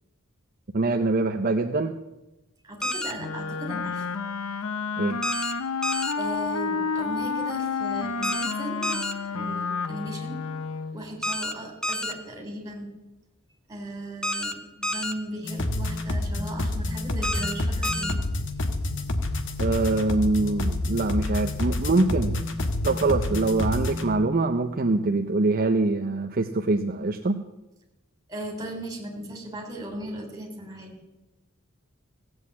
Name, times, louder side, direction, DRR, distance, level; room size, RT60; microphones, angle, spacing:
voice 1, 0.7-2.0 5.0-5.2 19.6-22.3 22.8-27.4, right 2 dB, 45° right, 5 dB, 0.7 m, -24 dB
voice 2, 2.6-4.1 6.1-9.0 9.2-10.4 10.9-12.9 13.7-18.2 28.3-30.9, right 1 dB, 15° right, 1 dB, 3.5 m, -37 dB
sound 1, 2.8-3.1 5.2-5.5 5.8-6.1 8.2-8.5 8.8-9.1 11.2-11.5 11.8-12.1 14.2-14.5 14.8-15.1 17.2-17.5 17.8-18.1, left 1 dB, 5° left, 0.8 m, -29 dB
Wind instrument woodwind instrument, 3.2-11.0, left 5 dB, 80° left, 0.7 m, -30 dB
sound 2, 15.4-25.3, left 1 dB, 65° left, 1.3 m, -29 dB
16.0 x 8.0 x 8.4 m, 1.0 s
head